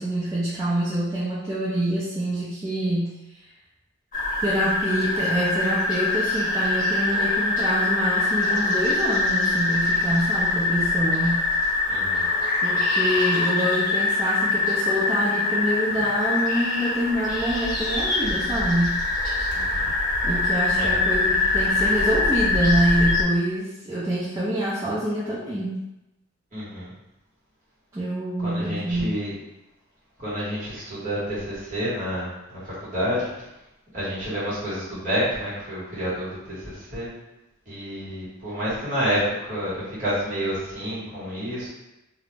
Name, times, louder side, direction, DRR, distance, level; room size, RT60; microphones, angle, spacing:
voice 1, 0.0-3.1 4.4-11.4 12.6-19.0 20.2-25.8 27.9-29.1, equal, 15° right, -10 dB, 0.4 m, -26 dB
sound 1, 4.1-23.2, left 3 dB, 40° left, 0.5 m, -24 dB
voice 2, 11.9-12.3 19.5-19.9 20.7-21.0 26.5-26.9 28.4-29.3 30.2-33.5 33.9-37.1 37.7-41.7, equal, 40° right, -9 dB, 1.2 m, -29 dB
2.4 x 2.0 x 3.1 m, 0.94 s
head